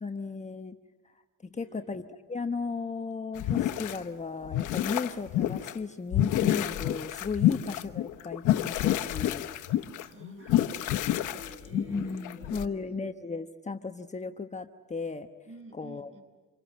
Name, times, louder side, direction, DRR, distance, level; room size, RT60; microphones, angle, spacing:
voice 1, 0.0-0.8 1.4-2.0 2.3-9.5 11.7-15.3 15.7-16.1, left 4 dB, 25° left, 6 dB, 1.1 m, -35 dB
voice 2, 1.5-1.9 9.7-12.8 15.4-16.2, right 1 dB, 40° right, 3 dB, 7.7 m, -50 dB
sound 1, 3.4-4.0 4.4-5.7 6.1-12.6, left 13 dB, 85° left, 1.1 m, -28 dB
27.5 x 23.5 x 9.0 m, 1.3 s
cardioid pair, 90°, 30 cm